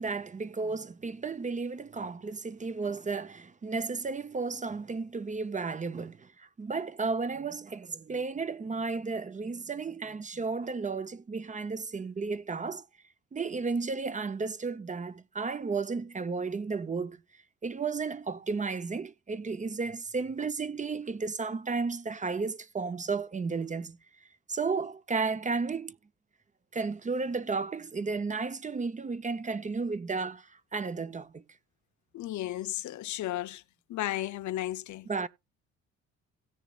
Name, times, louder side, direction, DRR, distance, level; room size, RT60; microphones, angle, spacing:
voice 1, 0.0-12.8 13.3-17.2 17.6-24.0 24.5-26.0 26.7-31.4 35.1-35.3, right 4 dB, 25° right, 0.6 m, -33 dB
voice 2, 32.1-33.6 33.9-35.1, left 14 dB, 70° left, 0.6 m, -34 dB
17.0 x 7.0 x 2.3 m
cardioid pair, 90°, 30 cm